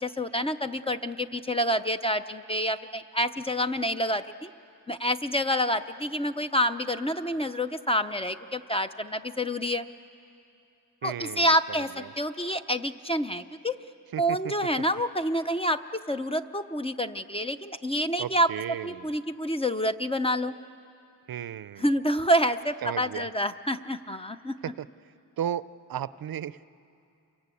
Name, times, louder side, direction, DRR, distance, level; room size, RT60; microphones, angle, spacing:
voice 1, 0.0-4.5 4.9-9.8 11.0-13.8 14.2-18.5 18.8-20.5 21.8-24.5, equal, 15° left, 9 dB, 0.5 m, -28 dB
voice 2, 11.0-12.1 14.1-14.5 18.2-19.1 21.3-21.9 22.8-23.3 24.6-24.9 25.4-26.6, right 10 dB, 60° right, 16 dB, 0.6 m, -35 dB
28.5 x 23.5 x 8.4 m, 2.6 s
wide cardioid pair, 120°, 40 cm